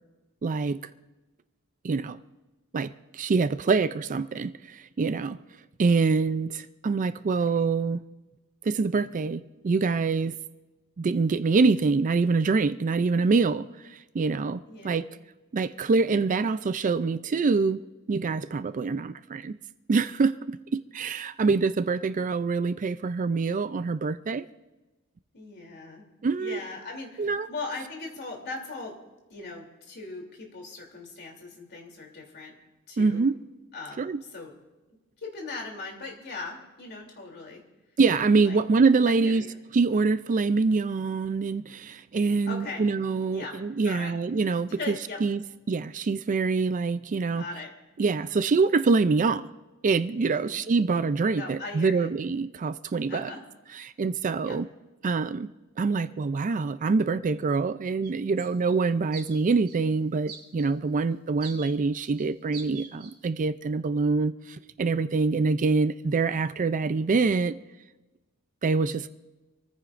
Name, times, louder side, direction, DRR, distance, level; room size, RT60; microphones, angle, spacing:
voice 1, 0.4-0.8 1.8-2.2 2.7-5.4 5.8-8.0 8.6-10.4 11.0-15.1 15.5-19.6 19.9-24.4 26.2-26.6 27.2-27.5 33.0-33.3 34.0-34.2 38.0-39.4 39.7-44.9 45.2-45.4 45.7-47.4 48.0-49.5 49.8-53.3 53.8-54.7 55.0-55.5 55.8-67.6 68.6-69.1, right 4 dB, 35° right, 0.4 m, -25 dB
voice 2, 7.3-7.7 14.7-15.1 25.3-26.1 26.4-29.0 29.3-32.6 32.9-33.3 33.7-34.5 35.2-37.6 38.4-38.6 39.1-39.6 42.4-42.8 43.3-43.6 43.8-44.2 44.6-45.2 47.4-47.7 50.3-50.6 51.3-52.1 53.1-53.4 54.4-54.6, left 3 dB, 50° left, 3.1 m, -39 dB
sound 1, 58.0-58.1 58.4-58.7 59.1-59.8 60.3-60.7 61.4-61.7 62.1-62.3 62.5-63.1, right 6 dB, 85° right, 2.4 m, -44 dB
27.0 x 14.5 x 2.5 m
head